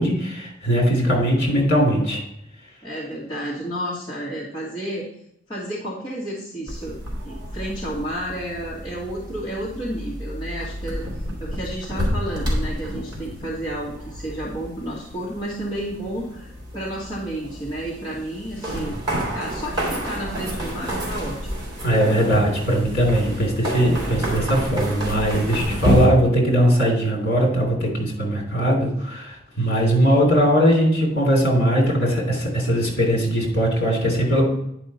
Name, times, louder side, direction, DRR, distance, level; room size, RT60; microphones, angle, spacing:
voice 1, 0.0-2.2 21.8-34.4, equal, 50° left, -1 dB, 3.0 m, -20 dB
voice 2, 2.8-5.1 5.5-7.0 7.2-11.0 11.4-21.5 23.4-23.7, right 1 dB, 25° left, -8 dB, 1.6 m, -31 dB
sound 1, 6.7-26.1, equal, 20° right, 2.9 m, -29 dB
9.9 x 5.4 x 4.2 m, 0.76 s
head